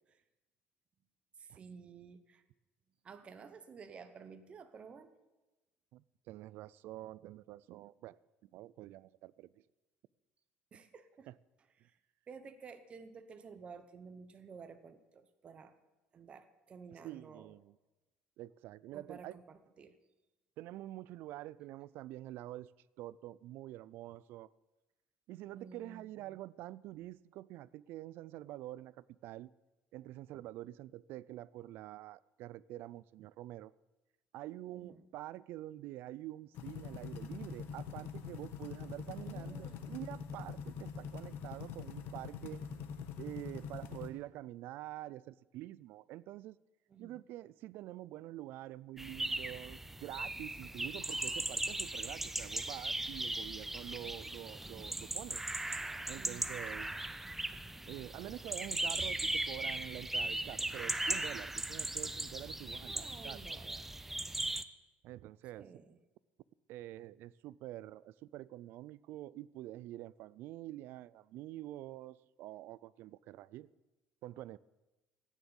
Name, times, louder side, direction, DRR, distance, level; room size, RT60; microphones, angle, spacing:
voice 1, 1.4-2.4 3.0-5.2 10.7-11.3 11.8-12.0 12.3-15.8 16.1-17.5 18.9-20.0 25.5-26.4 34.7-35.1 39.1-40.0 46.9-47.2 56.2-56.6 62.9-63.9 65.5-66.0, right 5 dB, 30° right, 0.9 m, -53 dB
voice 2, 5.9-8.2 8.4-9.5 11.3-11.4 11.8-11.9 17.0-17.8 18.4-19.3 20.6-22.7 23.0-24.5 25.3-29.5 29.9-33.7 34.3-42.6 43.2-46.6 47.0-55.4 56.1-56.9 57.9-63.4 63.6-63.8 65.0-65.7 66.7-73.7 74.2-74.6, right 15 dB, 60° right, 0.4 m, -47 dB
sound 1, 36.5-44.1, left 6 dB, 65° left, 1.3 m, -44 dB
sound 2, 49.0-64.6, right 2 dB, 5° right, 0.5 m, -38 dB
14.5 x 9.5 x 7.1 m
cardioid pair, 150°, 4 cm